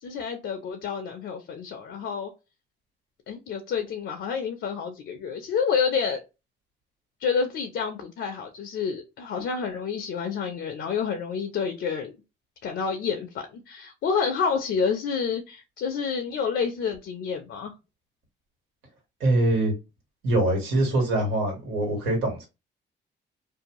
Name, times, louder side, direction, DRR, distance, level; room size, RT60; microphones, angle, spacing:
voice 1, 0.0-2.3 3.3-6.2 7.2-12.2 12.6-17.7, left 6 dB, 65° left, 0.6 m, -29 dB
voice 2, 19.2-19.7 20.2-22.5, right 1 dB, 90° right, 1.5 m, -23 dB
2.6 x 2.1 x 2.9 m
cardioid pair, 90°, 20 cm